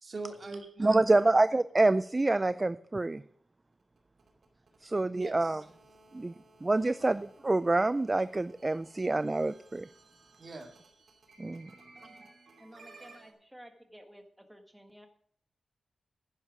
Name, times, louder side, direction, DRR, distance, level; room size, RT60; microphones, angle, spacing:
voice 1, 0.0-1.2 5.1-5.6 6.2-6.3 10.4-10.8, right 3 dB, 45° right, 2.4 m, -41 dB
voice 2, 0.8-3.2 4.8-5.6 6.1-6.3 6.6-9.9 11.4-11.7, right 2 dB, 25° right, 0.3 m, -27 dB
sound 1, 3.7-13.3, right 3 dB, 70° right, 2.6 m, -58 dB
voice 3, 12.6-15.1, equal, 5° right, 1.5 m, -53 dB
11.0 x 9.9 x 5.0 m
wide cardioid pair, 120°, 0 cm